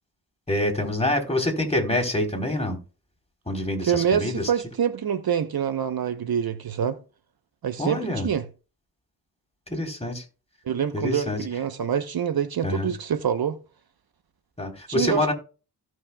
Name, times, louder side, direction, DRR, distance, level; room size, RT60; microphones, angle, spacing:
voice 1, 0.5-2.8 3.5-4.5 7.8-8.3 9.7-10.2 10.9-11.4 12.6-12.9 14.6-15.3, left 1 dB, 15° left, 3.8 m, -26 dB
voice 2, 3.9-7.0 7.6-8.4 10.7-13.6 14.9-15.3, right 8 dB, 60° right, 0.9 m, -26 dB
16.5 x 6.3 x 2.3 m
supercardioid pair, 40°, 42 cm